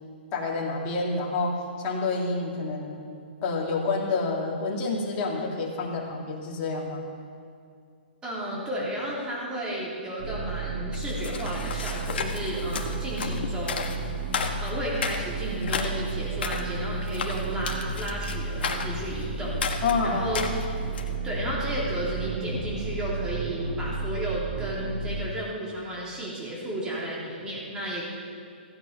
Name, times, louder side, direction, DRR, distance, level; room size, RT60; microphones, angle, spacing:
voice 1, 0.3-3.0 3.4-7.1 19.8-20.2, left 3 dB, 30° left, -2 dB, 2.3 m, -28 dB
voice 2, 8.2-13.9 14.6-20.4 21.2-28.0, right 1 dB, 15° right, -5 dB, 3.1 m, -33 dB
sound 1, 10.2-25.3, right 3 dB, 40° right, 2.3 m, -33 dB
sound 2, 10.9-21.2, left 5 dB, 70° left, 1.4 m, -34 dB
15.5 x 8.7 x 5.4 m, 2.3 s
hypercardioid pair, 145°, 6 cm